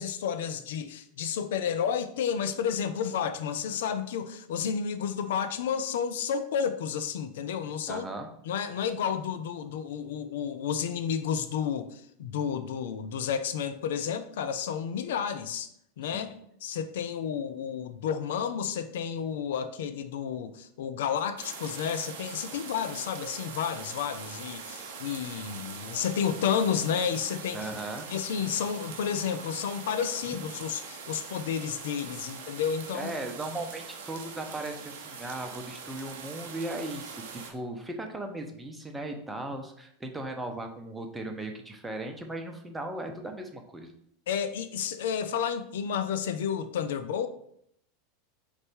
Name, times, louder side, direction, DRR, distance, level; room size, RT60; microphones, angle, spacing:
voice 1, 0.0-8.0 8.4-15.7 16.0-16.3 16.6-27.6 28.1-33.1 44.3-47.3, left 7 dB, 65° left, 10 dB, 0.4 m, -31 dB
voice 2, 7.9-8.3 16.0-16.3 24.8-25.0 27.5-28.1 30.3-30.4 32.1-32.3 32.9-43.9, right 2 dB, 10° right, 4 dB, 0.7 m, -37 dB
sound 1, 21.4-37.5, right 5 dB, 60° right, 0.6 m, -42 dB
3.9 x 3.2 x 3.6 m, 0.71 s
figure-of-eight pair, 85°, 0 cm